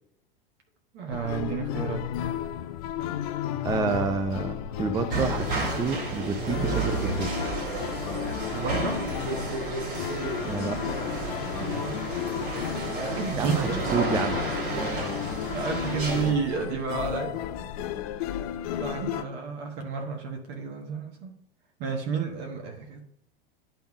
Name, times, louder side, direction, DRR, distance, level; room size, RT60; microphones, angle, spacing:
voice 1, 0.9-2.1 8.5-9.0 11.6-12.5 13.2-13.8 15.5-17.4 18.8-21.3 21.8-23.1, right 5 dB, 35° right, 2 dB, 1.2 m, -31 dB
sound 1, 1.1-19.2, left 10 dB, 40° left, 0.5 m, -34 dB
voice 2, 3.6-7.3 10.4-10.8 13.4-14.4, right 5 dB, 15° right, 6 dB, 0.5 m, -29 dB
sound 2, 5.1-16.3, right 2 dB, 60° right, 2.8 m, -31 dB
10.5 x 3.5 x 4.7 m, 0.80 s
figure-of-eight pair, 90°, 29 cm